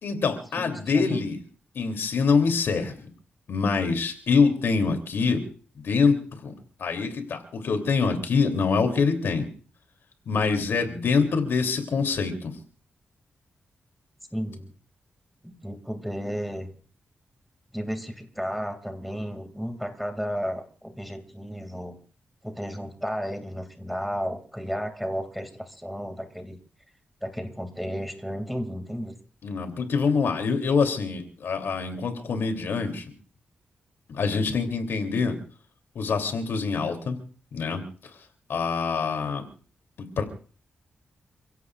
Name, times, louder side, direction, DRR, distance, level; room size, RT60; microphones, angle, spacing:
voice 1, 0.0-1.4 1.7-3.0 3.5-5.4 5.8-6.5 6.8-9.4 10.3-12.5 29.4-33.0 34.1-35.4 35.9-37.2 37.5-37.8 38.5-39.4 40.0-40.2, left 5 dB, 80° left, 6 dB, 3.2 m, -25 dB
voice 2, 0.6-1.2 14.3-14.7 15.4-16.7 17.7-22.0 22.4-26.6 27.2-29.1, equal, ahead, 5 dB, 2.6 m, -33 dB
29.0 x 16.5 x 2.5 m, 0.42 s
wide cardioid pair, 120°, 4 cm